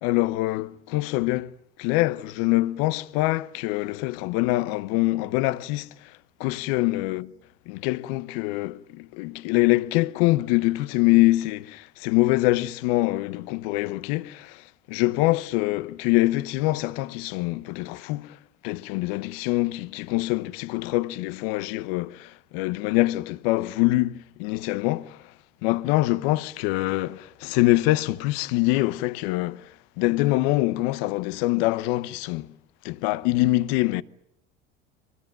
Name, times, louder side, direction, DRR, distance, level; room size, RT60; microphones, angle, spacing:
voice 1, 0.0-1.5 1.8-6.1 6.4-7.3 7.7-18.4 18.6-25.2 25.6-29.7 30.0-32.5 32.8-34.0, left 19 dB, 75° left, 0.9 m, -24 dB
25.0 x 19.5 x 9.1 m
hypercardioid pair, 75°, 29 cm